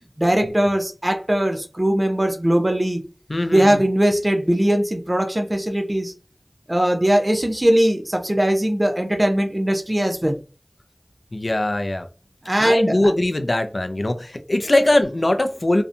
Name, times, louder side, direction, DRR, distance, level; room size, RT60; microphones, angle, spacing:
voice 1, 0.2-3.0 3.5-6.1 6.7-10.4 12.5-13.0, right 1 dB, 35° right, 0.6 m, -20 dB
voice 2, 3.3-3.8 11.3-12.1 12.6-15.8, left 1 dB, 65° left, 0.4 m, -21 dB
2.6 x 2.2 x 2.5 m
wide cardioid pair, 45°, 0 cm